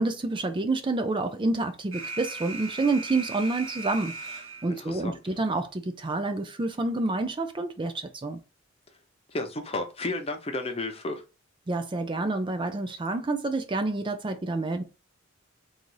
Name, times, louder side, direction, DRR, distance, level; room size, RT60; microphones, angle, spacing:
voice 1, 0.0-8.4 11.7-14.8, right 2 dB, 25° right, 0.4 m, -28 dB
Alarm, 1.9-4.9, right 3 dB, 75° right, 1.3 m, -38 dB
voice 2, 4.8-5.2 9.3-11.3, left 2 dB, 30° left, 0.8 m, -32 dB
3.9 x 2.6 x 4.7 m
head